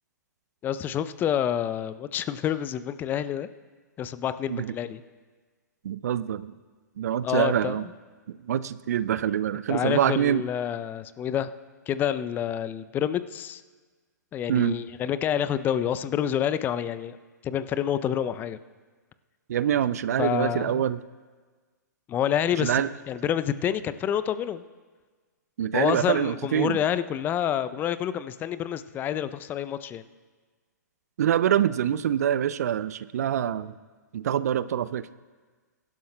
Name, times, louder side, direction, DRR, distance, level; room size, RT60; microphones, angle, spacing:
voice 1, 0.6-3.5 4.0-5.0 7.2-7.9 9.7-11.5 11.9-13.6 14.3-17.2 17.4-18.6 20.2-20.8 22.1-24.6 25.7-30.0, left 9 dB, 20° left, 14 dB, 0.4 m, -28 dB
voice 2, 5.8-6.5 7.0-7.8 8.4-10.4 14.5-14.8 19.5-21.0 22.6-22.9 25.6-26.8 31.2-33.7 34.1-35.1, right 10 dB, 60° right, 16 dB, 0.4 m, -25 dB
22.0 x 12.0 x 2.2 m, 1.4 s
figure-of-eight pair, 115°, 10 cm